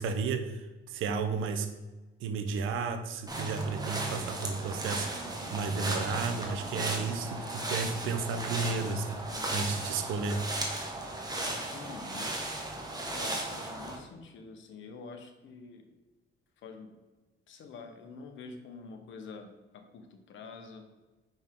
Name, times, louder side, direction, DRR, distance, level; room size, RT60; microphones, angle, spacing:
voice 1, 0.0-1.7 2.2-10.4, right 4 dB, 90° right, 8 dB, 0.7 m, -33 dB
sound 1, 3.3-13.9, right 1 dB, 20° right, 1.5 m, -36 dB
voice 2, 9.3-9.7 11.5-12.3 13.1-15.9 16.6-17.0 17.5-20.9, left 4 dB, 75° left, 5 dB, 1.1 m, -47 dB
6.0 x 5.4 x 3.7 m, 1.2 s
cardioid pair, 90°, 20 cm